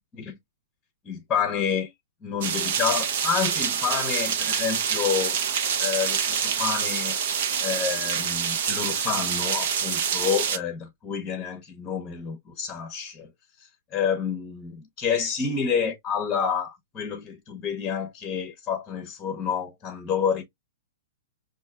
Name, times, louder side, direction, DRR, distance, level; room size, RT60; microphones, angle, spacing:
voice 1, 1.0-1.9 2.2-5.4 5.8-7.2 7.6-13.3 13.9-20.4, left 7 dB, 20° left, 0.8 m, -28 dB
sound 1, 2.4-10.6, right 7 dB, 55° right, 0.7 m, -26 dB
5.3 x 2.5 x 2.4 m
hypercardioid pair, 145°, 0 cm